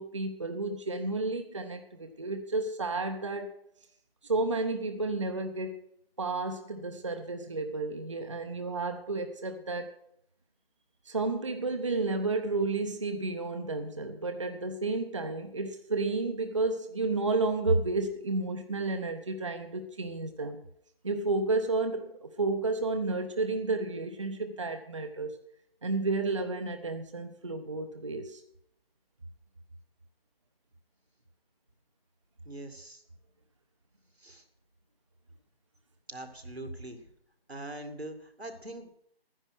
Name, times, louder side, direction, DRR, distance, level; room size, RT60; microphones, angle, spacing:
voice 1, 0.0-3.5 4.3-5.8 6.2-9.9 11.1-20.6 21.0-25.4 25.8-28.4, right 3 dB, 30° right, 7 dB, 0.7 m, -31 dB
voice 2, 32.4-33.0 34.2-34.4 36.1-37.0 37.5-38.9, right 1 dB, 90° right, 6 dB, 2.3 m, -42 dB
12.5 x 10.0 x 6.2 m, 0.71 s
figure-of-eight pair, 155°, 30 cm